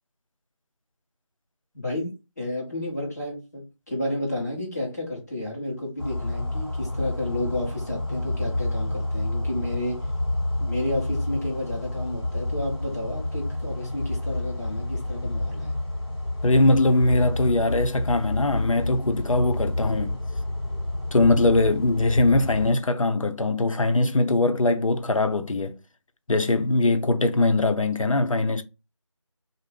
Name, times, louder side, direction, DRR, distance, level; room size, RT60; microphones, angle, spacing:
voice 1, 1.7-10.1 10.6-15.8, left 1 dB, 30° left, 1.1 m, -31 dB
sound 1, 6.0-22.7, left 2 dB, 50° left, 1.3 m, -29 dB
voice 2, 16.4-20.2 21.1-25.7 26.3-28.6, left 2 dB, 80° left, 0.5 m, -21 dB
2.6 x 2.1 x 3.1 m
figure-of-eight pair, 170°, 17 cm